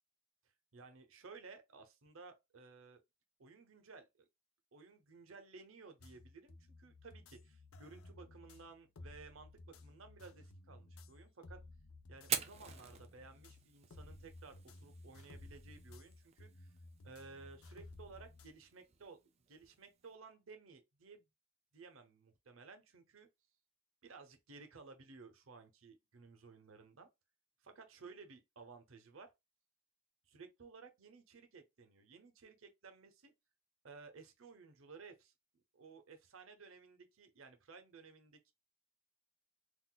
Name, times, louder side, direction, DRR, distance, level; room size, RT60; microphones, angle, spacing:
voice 1, 0.7-3.0 3.4-4.3 4.7-11.6 12.1-16.7 17.0-19.2 19.5-21.3 21.7-23.3 24.0-27.1 27.6-29.3 30.3-33.3 33.8-35.3 35.7-38.5, right 4 dB, 75° right, 0.8 m, -56 dB
sound 1, 6.0-18.5, left 2 dB, 90° left, 0.5 m, -56 dB
Fire, 12.2-20.1, right 8 dB, 30° right, 0.4 m, -47 dB
3.8 x 2.5 x 2.3 m
head